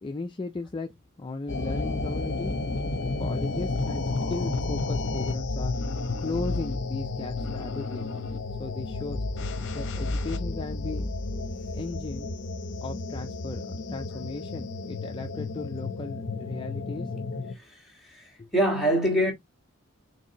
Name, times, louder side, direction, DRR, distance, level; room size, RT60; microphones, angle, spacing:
voice 1, 0.0-0.9 1.2-2.5 3.0-5.8 6.2-8.1 8.6-9.2 9.7-11.2 11.7-12.3 12.8-17.1 18.4-18.5, left 3 dB, 20° left, 0.4 m, -36 dB
sound 1, 1.5-17.5, left 3 dB, 55° left, 0.8 m, -31 dB
voice 2, 17.5-19.3, equal, ahead, 1.5 m, -26 dB
4.5 x 3.3 x 2.8 m
head